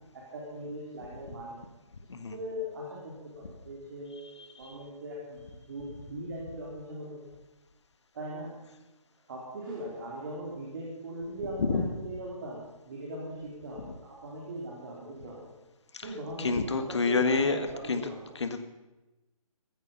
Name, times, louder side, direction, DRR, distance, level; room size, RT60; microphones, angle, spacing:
voice 1, 0.1-1.6 2.3-4.3 4.6-7.3 8.1-8.5 9.3-15.5 16.0-18.2, right 1 dB, 40° right, -4 dB, 3.9 m, -40 dB
voice 2, 4.2-4.7 11.6-11.9 15.9-18.0 18.3-18.6, left 4 dB, 50° left, 9 dB, 1.7 m, -29 dB
15.5 x 14.5 x 5.5 m, 1.0 s
figure-of-eight pair, 145°, 18 cm